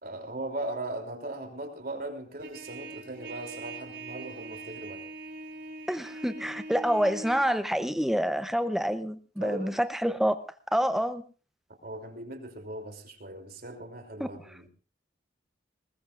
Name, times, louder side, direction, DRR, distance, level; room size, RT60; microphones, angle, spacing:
voice 1, 0.0-5.0 9.4-9.8 11.8-14.7, right 1 dB, 55° right, 4 dB, 3.1 m, -38 dB
Trumpet, 2.4-7.4, right 2 dB, 80° right, 3.6 m, -42 dB
voice 2, 5.9-10.4 10.7-11.2 14.2-14.3, equal, ahead, 10 dB, 0.8 m, -27 dB
20.5 x 20.0 x 2.5 m, 0.36 s
head